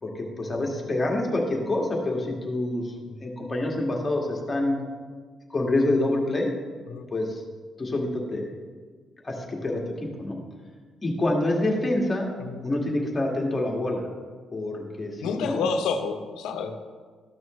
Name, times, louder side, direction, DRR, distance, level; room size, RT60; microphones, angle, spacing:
voice 1, 0.0-2.9 3.2-4.8 5.5-6.5 7.1-7.4 7.8-8.5 9.2-10.4 11.0-12.3 12.6-14.1 14.5-15.7, left 1 dB, 25° left, -1 dB, 1.9 m, -27 dB
voice 2, 15.2-16.8, left 5 dB, 85° left, 6 dB, 0.8 m, -29 dB
13.5 x 6.2 x 3.2 m, 1.5 s
cardioid pair, 90°, 0 cm